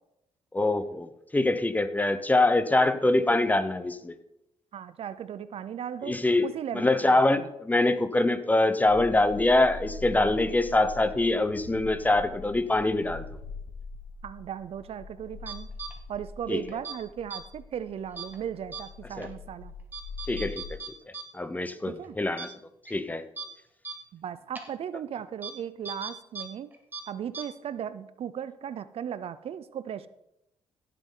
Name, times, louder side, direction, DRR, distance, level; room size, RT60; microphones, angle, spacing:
voice 1, 0.5-4.1 6.1-13.3 16.5-16.6 19.2-19.3 20.3-20.8 21.1-22.5 22.9-23.2, left 2 dB, 15° left, 12 dB, 0.8 m, -24 dB
voice 2, 4.7-7.5 14.2-15.7 16.1-19.7 21.9-22.2 24.1-26.7 27.1-30.1, right 9 dB, 60° right, 15 dB, 0.6 m, -37 dB
sound 1, 8.9-20.7, left 3 dB, 80° left, 1.1 m, -43 dB
sound 2, 15.5-15.9 16.7-17.0 17.3-17.4 18.2-18.4 18.7-18.8 19.2-19.3 19.9-21.2 21.5-21.6 22.0-22.1 22.4-22.5 22.9-23.0 23.4-23.5 23.8-24.0 24.6-24.7 25.4-25.5 25.9-26.5 26.7-27.0 27.3-27.4, right 5 dB, 15° right, 1.9 m, -37 dB
16.5 x 7.6 x 3.9 m, 0.84 s
cardioid pair, 90°, 11 cm